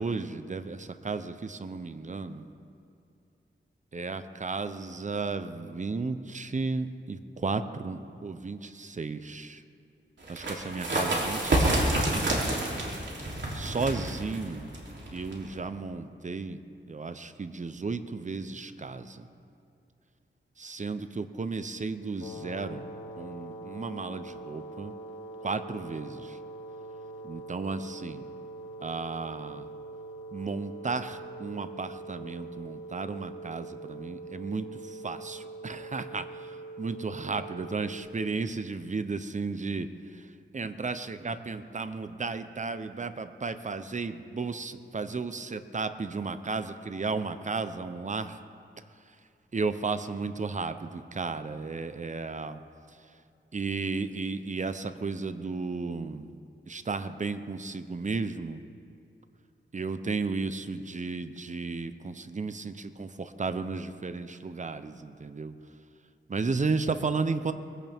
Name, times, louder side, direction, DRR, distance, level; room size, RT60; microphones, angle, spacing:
voice 1, 0.0-2.5 3.9-9.6 10.3-12.2 13.5-14.8 15.1-16.6 16.9-19.3 20.6-22.9 23.2-24.9 25.4-26.4 27.2-28.3 28.8-29.7 30.3-36.5 36.8-40.3 40.5-48.4 49.5-52.6 53.5-56.3 56.7-58.6 59.7-65.5 66.3-67.5, right 4 dB, 40° right, 11 dB, 0.8 m, -34 dB
sound 1, 10.2-15.6, right 1 dB, 65° right, 3.2 m, -29 dB
sound 2, 22.2-38.0, right 2 dB, 80° left, 1.4 m, -43 dB
21.5 x 16.0 x 3.6 m, 2.4 s
wide cardioid pair, 75°, 20 cm